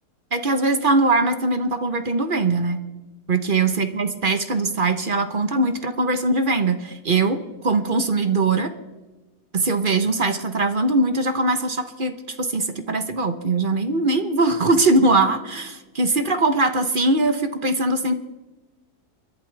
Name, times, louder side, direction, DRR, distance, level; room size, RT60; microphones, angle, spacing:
voice 1, 0.3-2.8 3.3-8.7 9.5-18.1, right 3 dB, 40° right, 8 dB, 1.0 m, -21 dB
29.0 x 11.0 x 3.4 m, 1.2 s
omnidirectional pair, 1.7 m